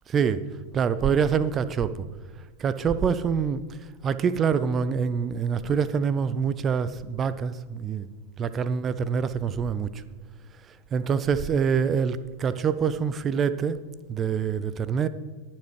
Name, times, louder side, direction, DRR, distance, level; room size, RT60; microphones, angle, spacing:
voice 1, 0.1-0.4 0.7-2.1 2.6-3.6 4.0-8.1 8.4-9.9 10.9-13.8 14.1-15.1, right 6 dB, 25° right, 15 dB, 0.5 m, -25 dB
21.0 x 7.3 x 3.3 m, 1.5 s
figure-of-eight pair, 90°, 0 cm